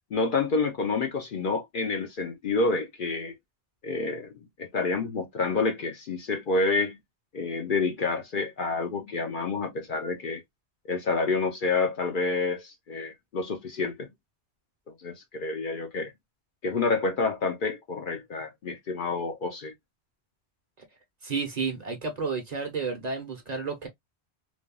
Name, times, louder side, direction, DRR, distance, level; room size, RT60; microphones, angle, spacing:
voice 1, 0.1-3.3 3.8-4.3 4.6-7.0 7.3-10.4 10.9-14.1 15.0-16.1 16.6-19.7, left 3 dB, 60° left, 0.7 m, -28 dB
voice 2, 21.2-23.9, right 4 dB, 40° right, 0.9 m, -31 dB
3.3 x 2.2 x 2.2 m
omnidirectional pair, 1.1 m